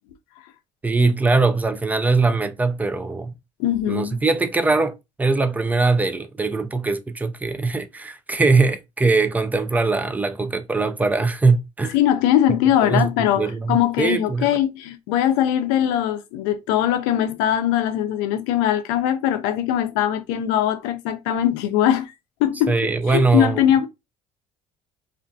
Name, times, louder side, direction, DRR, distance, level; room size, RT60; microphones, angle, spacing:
voice 1, 0.8-3.3 3.9-12.0 12.8-13.1 13.4-14.5 22.7-23.6, right 3 dB, 10° right, 0.4 m, -21 dB
voice 2, 3.6-4.2 11.9-22.1 22.4-22.7 23.1-23.9, left 11 dB, 85° left, 0.5 m, -21 dB
2.5 x 2.4 x 2.2 m
supercardioid pair, 95°, 14 cm